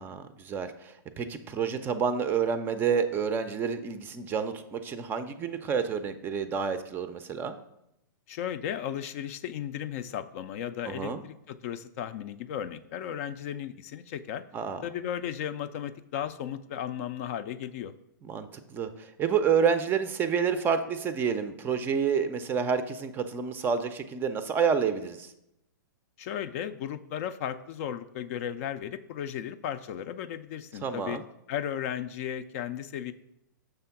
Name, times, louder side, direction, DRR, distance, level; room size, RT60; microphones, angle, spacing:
voice 1, 0.0-7.5 10.9-11.2 14.5-14.8 18.2-25.3 30.8-31.2, right 6 dB, 20° right, 10 dB, 0.4 m, -29 dB
voice 2, 8.3-14.4 14.8-17.9 26.2-31.2 31.5-33.1, left 9 dB, 45° left, 12 dB, 0.4 m, -35 dB
6.7 x 3.5 x 5.8 m, 0.81 s
hypercardioid pair, 135°, 11 cm